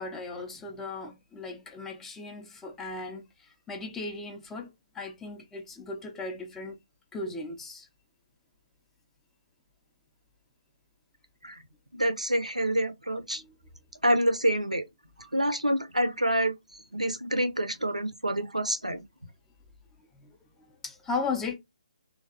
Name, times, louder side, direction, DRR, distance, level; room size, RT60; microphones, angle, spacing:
voice 1, 0.0-6.8 7.1-7.9 13.4-13.6 20.1-20.3 20.6-21.5, left 3 dB, 10° left, 0.4 m, -37 dB
voice 2, 12.0-13.4 14.0-14.8 15.2-19.0, right 1 dB, 85° right, 0.6 m, -27 dB
3.2 x 2.2 x 2.5 m
figure-of-eight pair, 140°, 4 cm